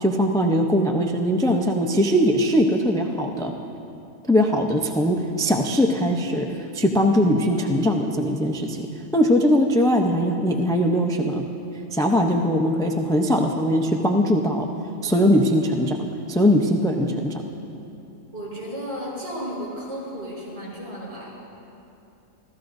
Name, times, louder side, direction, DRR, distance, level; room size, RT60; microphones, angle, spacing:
voice 1, 0.0-3.5 4.3-6.5 6.7-8.9 9.1-11.5 11.9-14.7 15.0-17.4, equal, 5° left, 2 dB, 0.5 m, -21 dB
voice 2, 18.3-21.3, equal, 55° right, -7 dB, 5.0 m, -33 dB
27.5 x 15.0 x 2.7 m, 2.8 s
omnidirectional pair, 1.3 m